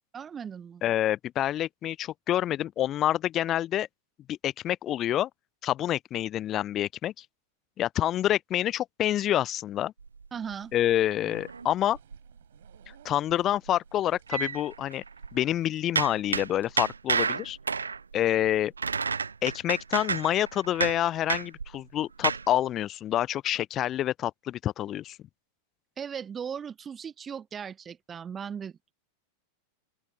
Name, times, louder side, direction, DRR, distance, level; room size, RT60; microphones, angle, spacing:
voice 1, 0.1-0.8 10.3-10.7 26.0-28.9, right 7 dB, 20° right, 1.4 m, -38 dB
voice 2, 0.8-3.9 4.3-5.3 5.6-7.2 7.8-9.9 10.7-12.0 13.0-15.0 15.3-17.6 18.1-18.7 19.4-25.2, left 12 dB, 30° left, 0.7 m, -27 dB
sound 1, 10.0-12.4 12.7-12.9 13.2-15.5 16.0-22.5, right 5 dB, 75° right, 0.7 m, -31 dB
sound 2, 10.4-16.7, right 12 dB, 60° right, 6.5 m, -63 dB
open air
figure-of-eight pair, 90°, 0 cm